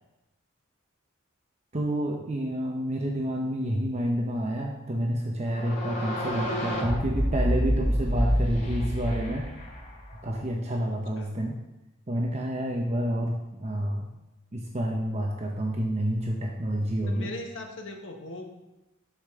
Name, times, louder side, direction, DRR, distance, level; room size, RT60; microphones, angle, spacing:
voice 1, 1.7-9.4 10.2-11.6 12.1-14.1 14.5-17.3, equal, 35° right, 0 dB, 0.8 m, -29 dB
sound 1, 5.5-10.3, equal, 40° left, 2.1 m, -28 dB
voice 2, 17.0-18.5, left 1 dB, 65° left, 3 dB, 1.2 m, -39 dB
12.5 x 5.1 x 3.6 m, 0.97 s
head